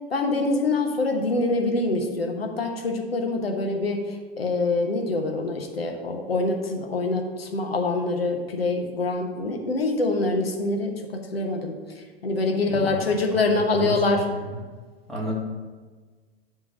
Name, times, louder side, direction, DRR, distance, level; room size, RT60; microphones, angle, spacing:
voice 1, 0.1-14.3, left 2 dB, 75° left, 2 dB, 1.3 m, -25 dB
voice 2, 12.4-13.0 13.7-14.2 15.1-15.3, equal, ahead, -5 dB, 2.2 m, -32 dB
9.9 x 3.6 x 6.1 m, 1.4 s
figure-of-eight pair, 95°, 30 cm